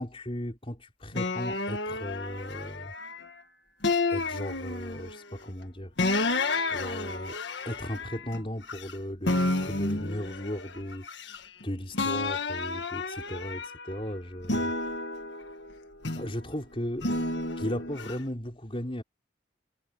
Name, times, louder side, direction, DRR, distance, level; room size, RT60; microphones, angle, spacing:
voice 1, 0.0-2.9 4.1-5.9 6.7-7.4 7.6-11.1 11.6-14.7 16.2-17.1 17.6-19.0, equal, 30° left, 4.7 m, -36 dB
sound 1, 1.1-3.3 3.8-5.2 6.0-8.9 9.2-11.6 11.9-14.0 14.4-16.4 17.0-18.1, left 2 dB, 75° left, 1.7 m, -31 dB
head